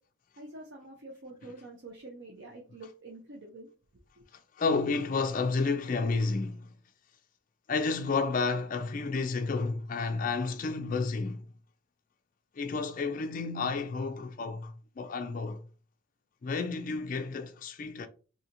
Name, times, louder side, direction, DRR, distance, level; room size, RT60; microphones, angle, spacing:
voice 1, 0.4-3.7, right 2 dB, 55° right, 0.6 m, -47 dB
voice 2, 4.6-6.7 7.7-11.5 12.5-15.6 16.4-18.1, left 4 dB, 40° left, 0.3 m, -31 dB
3.8 x 2.7 x 2.8 m
head